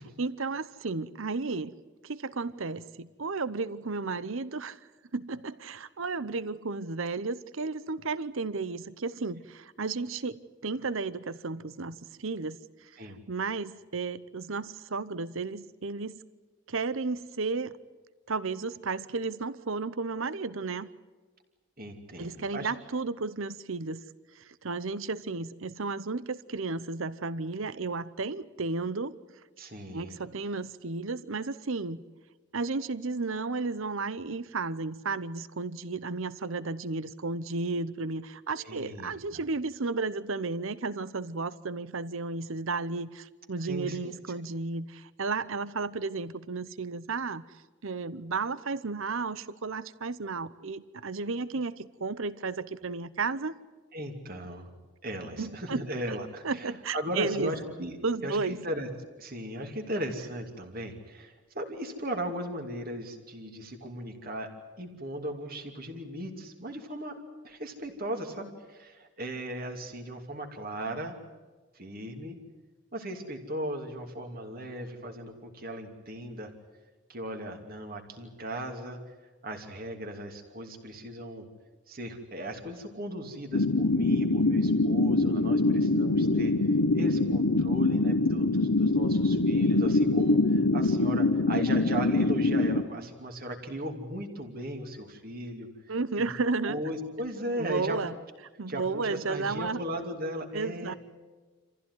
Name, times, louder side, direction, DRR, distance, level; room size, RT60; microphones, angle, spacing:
voice 1, 0.2-1.7 2.0-4.8 5.1-12.9 13.3-16.2 16.7-17.7 18.3-20.9 22.2-24.0 24.4-29.2 29.9-32.0 32.5-47.4 47.8-53.5 55.4-56.2 56.4-57.5 58.0-58.6 95.9-96.8 97.6-98.1 98.6-99.8 100.5-100.9, right 3 dB, 65° right, 16 dB, 0.8 m, -33 dB
voice 2, 21.8-22.7 29.6-30.2 38.6-39.2 43.6-44.1 53.9-54.7 55.0-58.9 59.2-64.5 64.8-67.2 67.4-71.2 71.7-72.4 72.9-76.5 77.1-79.0 79.4-81.5 81.9-86.6 86.9-95.7 96.2-96.3 96.7-98.0 98.7-101.0, right 1 dB, 40° right, 4 dB, 2.7 m, -37 dB
sound 1, 83.5-92.8, left 2 dB, 85° left, 1.1 m, -24 dB
27.5 x 15.5 x 9.6 m, 1.3 s
head